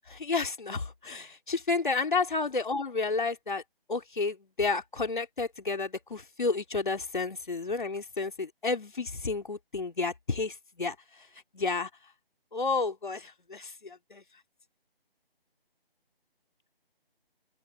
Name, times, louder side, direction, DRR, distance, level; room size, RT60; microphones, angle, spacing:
voice 1, 0.1-3.6 3.9-11.0 11.5-11.9 12.5-14.2, left 4 dB, 55° left, 2.9 m, -31 dB
open air
figure-of-eight pair, 175°, 30 cm